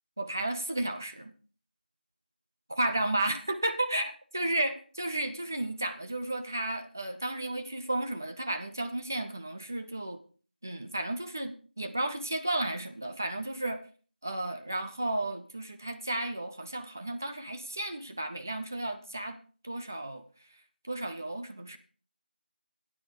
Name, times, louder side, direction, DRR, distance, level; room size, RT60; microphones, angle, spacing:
voice 1, 0.2-1.3 2.7-10.2 10.6-13.8 14.2-19.4 19.6-20.2 20.8-21.8, right 1 dB, 15° right, 7 dB, 0.5 m, -33 dB
9.2 x 8.9 x 5.2 m, 0.39 s
figure-of-eight pair, 175°, 5 cm